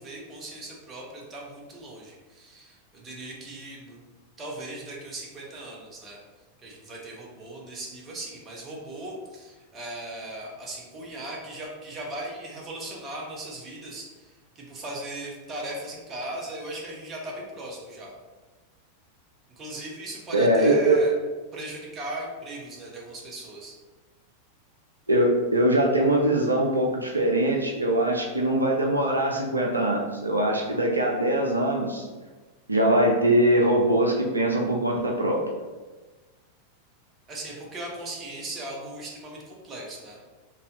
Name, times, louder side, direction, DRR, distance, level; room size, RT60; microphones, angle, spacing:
voice 1, 0.0-4.0 4.4-6.2 6.6-18.1 19.6-21.1 21.5-23.7 37.3-40.2, right 1 dB, 25° right, -2 dB, 0.9 m, -38 dB
voice 2, 20.3-21.0 25.1-32.1 32.7-35.4, right 1 dB, 80° right, -1 dB, 0.4 m, -22 dB
3.9 x 2.6 x 2.7 m, 1.3 s
figure-of-eight pair, 90°, 0 cm